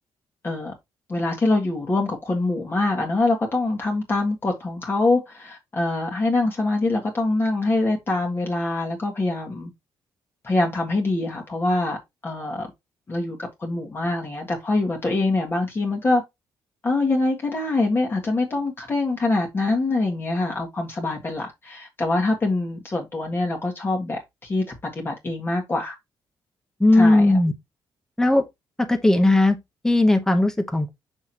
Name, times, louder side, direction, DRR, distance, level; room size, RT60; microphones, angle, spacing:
voice 1, 1.1-9.7 10.4-12.0 12.2-12.7 13.1-16.2 16.8-24.6 24.9-25.9 27.0-27.3, left 2 dB, 25° left, 1.8 m, -24 dB
voice 2, 26.8-27.5 28.2-28.5 28.8-29.6 29.8-30.9, left 2 dB, 5° left, 0.9 m, -17 dB
6.3 x 5.9 x 2.9 m
cardioid pair, 125°, 8 cm